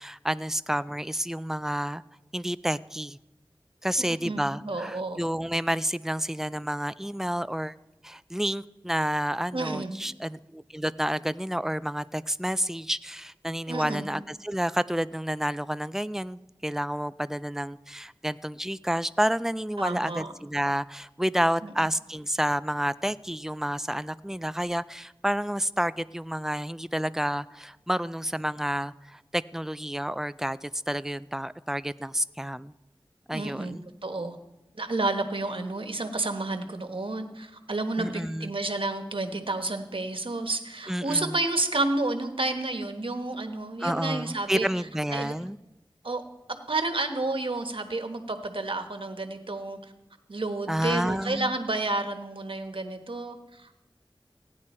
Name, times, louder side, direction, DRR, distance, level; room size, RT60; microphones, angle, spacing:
voice 1, 0.0-2.0 2.3-3.2 3.8-7.7 8.0-32.7 33.3-33.8 38.0-38.5 40.9-41.4 43.8-45.6 50.7-51.5, equal, 5° right, 15 dB, 0.4 m, -30 dB
voice 2, 4.2-5.2 9.5-10.0 13.7-14.1 19.8-20.3 21.6-21.7 33.3-34.4 34.7-44.7 45.1-45.3 46.0-46.2 46.7-49.8 50.3-53.7, right 2 dB, 75° right, 6 dB, 1.3 m, -30 dB
16.5 x 9.9 x 4.3 m, 0.96 s
wide cardioid pair, 40°, 9 cm